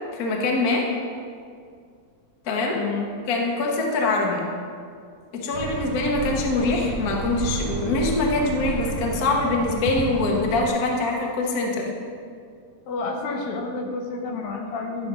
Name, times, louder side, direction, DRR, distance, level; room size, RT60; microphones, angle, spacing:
voice 1, 0.1-0.9 2.4-2.8 3.3-4.4 5.3-11.9, left 3 dB, 60° left, 0 dB, 0.9 m, -24 dB
voice 2, 2.7-3.1 12.9-15.1, left 3 dB, 75° left, 2 dB, 2.2 m, -29 dB
sound 1, 5.5-10.7, right 5 dB, 90° right, 1.3 m, -31 dB
11.5 x 5.4 x 4.8 m, 2.2 s
omnidirectional pair, 3.3 m